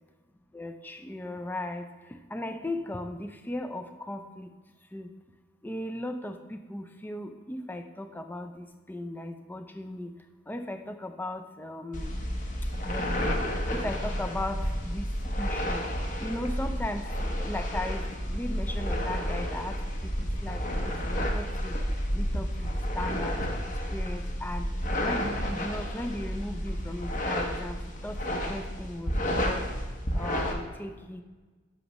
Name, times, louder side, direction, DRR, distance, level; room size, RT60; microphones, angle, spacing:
voice 1, 0.5-4.5 4.9-5.1 5.6-10.1 10.5-12.1 12.8-13.3 13.7-15.1 15.4-15.8 16.2-19.8 20.0-21.8 22.1-23.6 23.9-24.7 25.0-27.8 28.0-29.6 30.1-31.2, left 1 dB, 10° left, 7 dB, 0.4 m, -37 dB
sound 1, 11.9-30.5, equal, 40° left, 0.9 m, -31 dB
10.5 x 6.1 x 3.0 m, 1.3 s
head